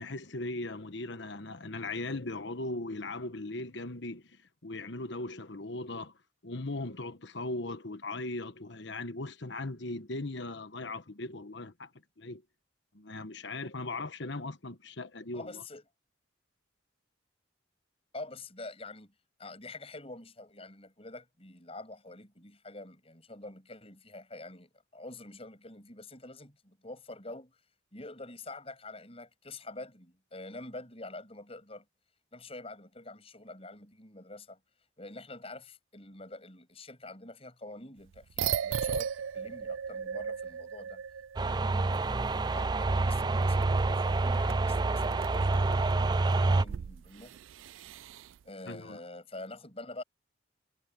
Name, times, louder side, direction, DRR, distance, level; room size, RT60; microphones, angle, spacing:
voice 1, 0.0-6.1 6.4-11.9 12.2-12.4 12.9-15.6 48.7-49.0, left 2 dB, 65° left, 1.3 m, -38 dB
voice 2, 15.3-15.8 18.1-19.1 19.4-27.6 27.9-31.9 32.3-34.6 35.0-41.0 41.4-47.4 48.4-50.0, left 2 dB, 30° left, 7.0 m, -46 dB
sound 1, 38.1-41.7 41.9-42.0 42.6-48.4, right 8 dB, 90° right, 0.4 m, -38 dB
sound 2, 41.4-46.6, right 3 dB, 20° right, 0.4 m, -27 dB
head